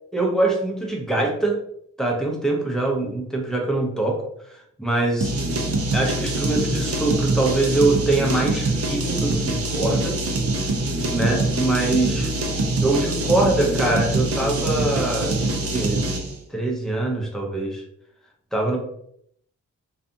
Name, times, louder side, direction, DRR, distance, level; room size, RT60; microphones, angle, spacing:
voice 1, 0.1-1.6 2.0-4.2 4.8-5.3 5.9-10.2 11.1-12.3 12.8-16.0 16.5-17.8 18.5-18.8, right 2 dB, ahead, -1 dB, 0.7 m, -23 dB
sound 1, 5.2-16.4, right 2 dB, 45° right, 0.6 m, -24 dB
2.5 x 2.3 x 2.6 m, 0.69 s
cardioid pair, 65°, 32 cm